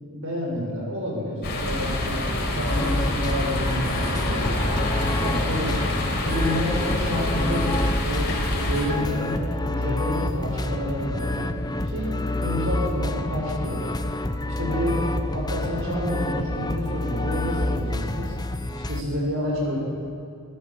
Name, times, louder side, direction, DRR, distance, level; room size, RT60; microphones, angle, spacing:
voice 1, 0.1-2.2 2.5-4.8 5.2-5.9 6.3-11.5 11.8-12.1 12.4-13.9 14.4-18.3 18.9-19.8, equal, 60° right, -2 dB, 7.0 m, -29 dB
sound 1, 1.4-8.9, left 1 dB, 45° left, 4.7 m, -27 dB
sound 2, 2.7-19.0, left 1 dB, 20° left, 0.8 m, -28 dB
25.5 x 15.0 x 7.7 m, 2.5 s
head